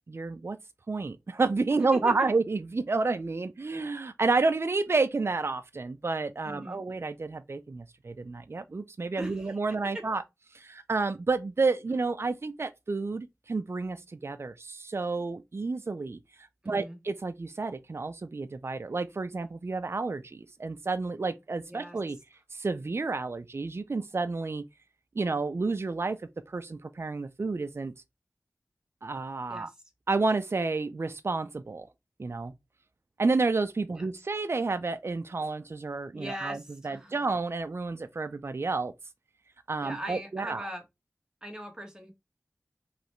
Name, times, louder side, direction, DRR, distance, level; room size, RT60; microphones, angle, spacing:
voice 1, 0.1-0.6 0.9-10.2 10.5-16.2 16.7-22.2 22.5-24.6 25.1-26.2 26.5-27.9 29.0-29.7 30.1-31.9 32.2-32.5 33.2-38.9 39.7-40.7, right 3 dB, 55° right, 0.5 m, -30 dB
voice 2, 1.7-2.3 6.4-6.8 9.2-9.6 16.6-17.0 21.7-22.0 29.5-29.7 33.9-34.0 36.1-37.1 39.8-40.8 41.4-42.1, right 1 dB, 15° right, 1.6 m, -40 dB
5.0 x 3.3 x 3.1 m
wide cardioid pair, 75°, 5 cm